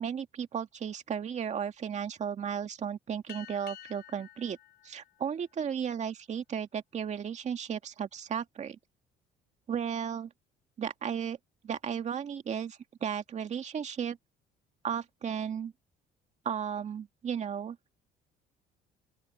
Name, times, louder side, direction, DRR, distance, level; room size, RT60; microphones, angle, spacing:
voice 1, 0.0-4.6 4.8-8.8 9.7-10.3 10.8-11.4 11.6-14.2 14.8-15.7 16.5-17.8, right 8 dB, 45° right, 2.2 m, -34 dB
sound 1, 3.3-6.2, left 12 dB, 70° left, 6.1 m, -51 dB
open air
cardioid pair, 110°, 17 cm